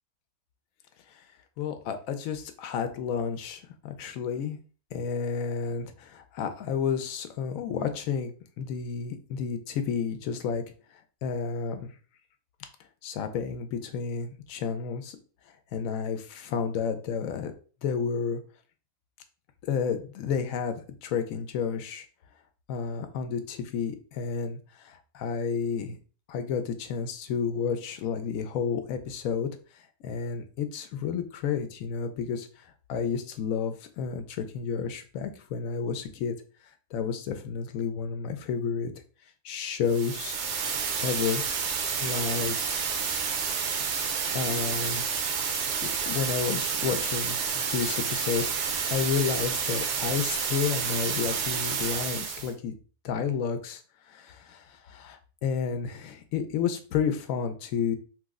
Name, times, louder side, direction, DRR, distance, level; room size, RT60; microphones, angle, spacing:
voice 1, 1.6-4.6 4.9-10.6 11.2-11.9 13.0-15.2 15.7-17.5 17.8-18.4 19.6-22.0 22.7-24.6 24.8-26.0 26.3-29.5 30.0-32.5 32.9-36.4 36.9-38.9 39.4-40.4 41.0-41.4 42.0-42.8 44.3-45.0 45.8-52.7 53.0-53.8 54.1-58.0, left 6 dB, 80° left, 8 dB, 1.0 m, -31 dB
sound 1, 39.9-52.5, right 6 dB, 65° right, 0.8 m, -30 dB
3.1 x 2.0 x 3.5 m, 0.38 s
omnidirectional pair, 1.4 m